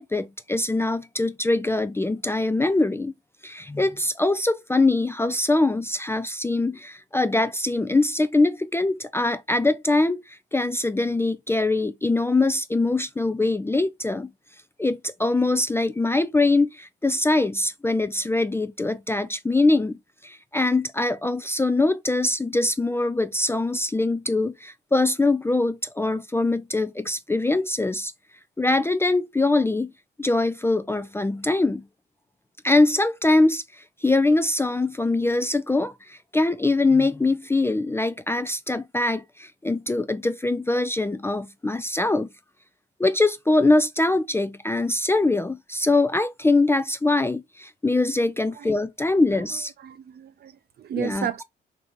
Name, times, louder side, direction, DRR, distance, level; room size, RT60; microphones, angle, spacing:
voice 1, 0.0-3.1 3.4-14.3 14.8-28.1 28.6-29.9 30.2-31.8 32.6-42.3 43.0-49.7 51.0-51.4, left 2 dB, 10° left, 0.3 m, -23 dB
voice 2, 49.3-51.4, right 8 dB, 55° right, 0.6 m, -33 dB
4.0 x 2.9 x 3.5 m
cardioid pair, 90°, 20 cm